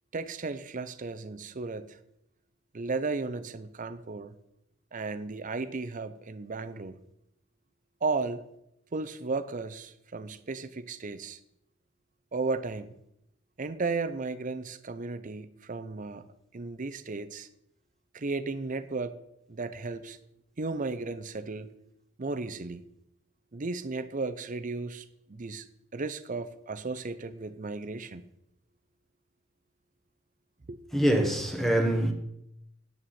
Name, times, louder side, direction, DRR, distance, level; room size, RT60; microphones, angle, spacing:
voice 1, 0.1-2.0 2.7-4.3 4.9-7.0 8.0-8.4 8.9-11.4 12.3-12.9 13.6-16.3 16.5-17.5 18.1-19.2 19.5-20.2 20.6-21.7 22.2-22.8 23.5-25.7 25.9-28.3 30.7-30.8, right 3 dB, 40° right, 0.6 m, -34 dB
voice 2, 30.9-32.1, right 1 dB, ahead, 1.2 m, -24 dB
9.3 x 9.2 x 4.3 m
head